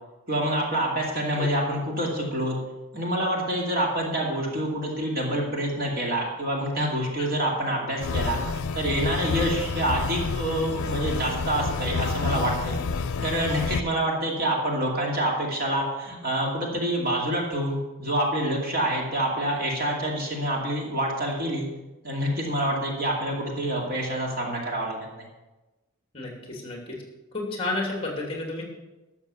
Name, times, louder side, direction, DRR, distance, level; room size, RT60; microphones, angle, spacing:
voice 1, 0.3-2.6 2.9-8.4 8.7-12.8 13.2-21.7 22.0-25.2, right 1 dB, 45° right, -2 dB, 2.5 m, -27 dB
sound 1, 8.0-13.8, left 4 dB, 90° left, 0.6 m, -29 dB
voice 2, 26.1-26.9 27.3-28.6, left 2 dB, 25° left, -1 dB, 3.0 m, -31 dB
12.5 x 7.1 x 6.8 m, 1.1 s
head